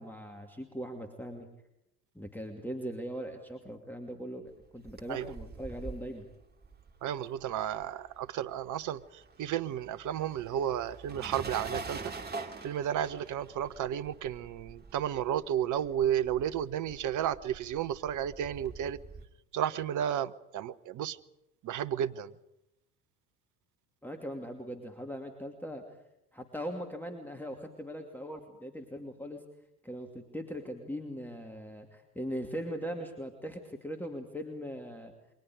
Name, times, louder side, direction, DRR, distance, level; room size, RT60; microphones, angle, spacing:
voice 1, 0.0-1.5 2.1-6.3 24.0-25.8 26.3-29.4 29.8-35.1, equal, 5° left, 2.6 m, -40 dB
sound 1, 4.6-8.3 8.5-19.3, right 3 dB, 20° right, 2.3 m, -45 dB
voice 2, 7.0-12.1 12.6-19.0 19.5-21.2 21.6-22.3, right 10 dB, 40° right, 1.0 m, -33 dB
29.0 x 23.5 x 5.1 m
figure-of-eight pair, 65°, 47 cm